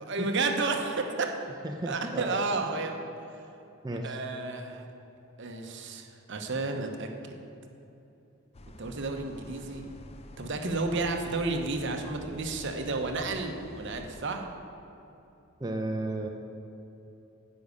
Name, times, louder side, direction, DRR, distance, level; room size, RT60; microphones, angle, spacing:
voice 1, 0.1-1.3 1.9-3.0 4.0-4.8 5.4-7.3 8.8-9.8 10.4-14.5, right 3 dB, 60° right, 4 dB, 0.9 m, -31 dB
voice 2, 1.7-2.3 3.8-4.2 15.6-16.3, right 2 dB, 20° right, 2 dB, 0.6 m, -33 dB
sound 1, 8.5-14.4, left 1 dB, 30° left, 0.5 m, -48 dB
10.0 x 5.3 x 8.3 m, 2.9 s
head